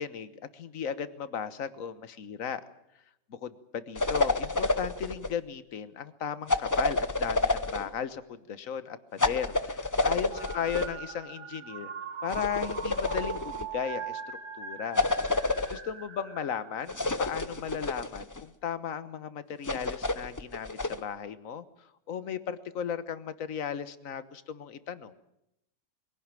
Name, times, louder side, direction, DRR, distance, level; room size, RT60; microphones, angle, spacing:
voice 1, 0.0-2.6 3.3-11.9 12.2-14.2 14.6-15.1 15.7-21.6 22.1-25.1, left 8 dB, 50° left, 13 dB, 1.5 m, -36 dB
sound 1, 3.9-5.3 6.5-7.9 9.2-10.9 12.3-13.6 15.0-15.8 16.9-18.4 19.6-21.0, left 2 dB, 30° left, 0.3 m, -29 dB
sound 2, 10.3-17.6, right 6 dB, 70° right, 2.8 m, -41 dB
23.0 x 17.0 x 9.0 m, 0.83 s
omnidirectional pair, 1.9 m